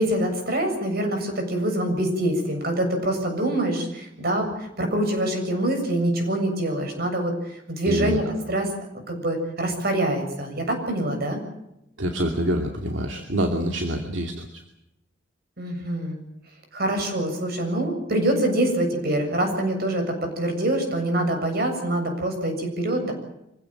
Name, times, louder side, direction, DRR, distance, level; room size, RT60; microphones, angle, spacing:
voice 1, 0.0-8.7 9.1-11.4 15.6-16.2 16.7-23.1, right 1 dB, 55° right, 5 dB, 7.4 m, -25 dB
voice 2, 7.9-8.2 12.0-14.6, right 1 dB, 70° right, 3 dB, 2.6 m, -26 dB
25.5 x 16.5 x 8.9 m, 0.84 s
head